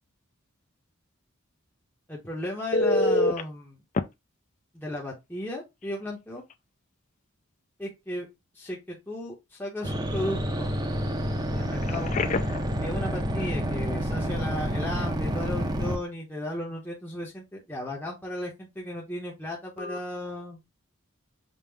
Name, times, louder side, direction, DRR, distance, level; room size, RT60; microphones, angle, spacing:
voice 1, 2.1-3.8 4.7-6.4 7.8-8.3 8.5-10.7 11.5-12.1 12.8-20.6, left 1 dB, 10° left, -3 dB, 0.8 m, -35 dB
Telephone, 2.7-3.4 3.9-4.0 5.8-5.9 6.4-6.5 11.8-12.7 19.8-20.0, left 2 dB, 35° left, 0.3 m, -25 dB
sound 1, 9.8-16.0, equal, 20° right, 0.6 m, -29 dB
5.3 x 2.0 x 3.3 m, 0.22 s
head